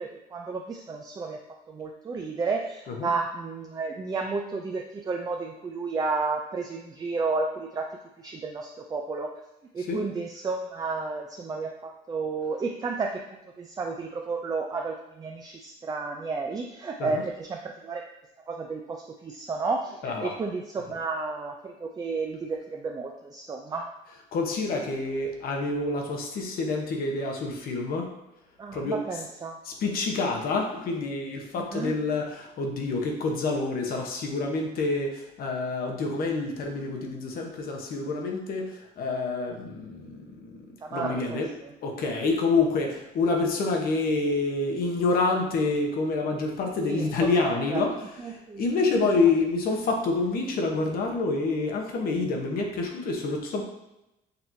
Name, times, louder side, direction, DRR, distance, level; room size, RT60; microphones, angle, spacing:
voice 1, 0.0-1.4 1.7-7.9 8.2-9.3 9.7-13.2 13.6-18.0 18.5-23.9 28.6-29.6 31.6-32.0 40.8-41.4 46.8-47.1 47.4-47.8 48.2-48.6, right 4 dB, 20° right, 1 dB, 0.4 m, -32 dB
voice 2, 20.0-20.3 24.3-28.1 28.7-29.0 29.6-41.5 41.8-53.6, left 3 dB, 60° left, 2 dB, 1.0 m, -27 dB
6.7 x 2.9 x 2.7 m, 0.91 s
cardioid pair, 110°, 17 cm